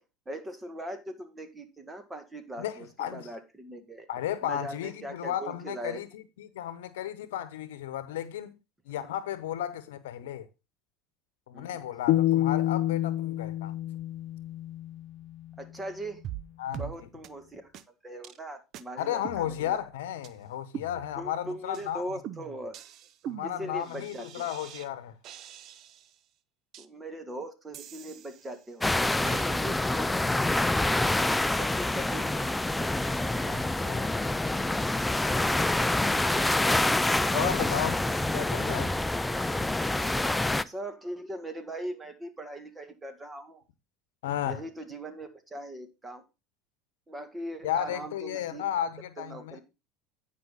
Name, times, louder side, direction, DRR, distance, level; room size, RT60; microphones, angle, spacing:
voice 1, 0.3-4.1 4.4-6.0 9.0-9.1 11.5-11.8 15.6-16.2 16.7-17.7 18.0-19.8 21.2-22.8 23.4-24.5 26.8-30.2 31.5-32.9 37.3-37.6 38.4-38.7 40.7-43.6 44.5-46.2 47.1-48.6 49.2-49.6, right 1 dB, 15° right, 1.9 m, -40 dB
voice 2, 2.6-3.3 4.1-8.6 8.9-10.5 11.5-13.7 16.6-16.9 19.0-22.1 23.3-25.1 33.4-34.1 37.3-38.0 38.3-38.9 44.2-44.6 47.6-49.6, left 11 dB, 80° left, 0.9 m, -34 dB
sound 1, 12.1-15.2, left 14 dB, 60° left, 0.4 m, -28 dB
sound 2, 16.2-16.5 16.7-16.9 17.2-17.3 17.7-17.8 18.2-18.4 18.7-18.8 19.2-19.9 20.2-20.3 20.7-21.4 21.7-21.9 22.2-24.9 25.2-26.2 26.7-26.9 27.7-28.7 29.2-29.6, right 10 dB, 50° right, 0.6 m, -43 dB
sound 3, 28.8-40.6, left 2 dB, 10° left, 0.5 m, -27 dB
9.6 x 5.5 x 4.0 m
hypercardioid pair, 90°, 0 cm